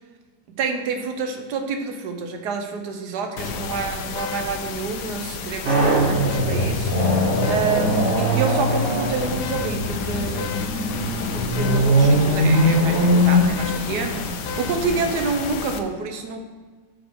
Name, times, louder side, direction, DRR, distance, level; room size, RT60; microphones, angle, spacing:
voice 1, 0.5-7.0 7.5-10.5 11.3-14.3 14.6-16.4, right 5 dB, 65° right, 5 dB, 1.3 m, -28 dB
sound 1, 3.4-15.8, left 6 dB, 70° left, 1.2 m, -32 dB
sound 2, 5.6-15.0, equal, 50° right, 1.8 m, -21 dB
7.9 x 5.2 x 4.6 m, 1.4 s
omnidirectional pair, 2.0 m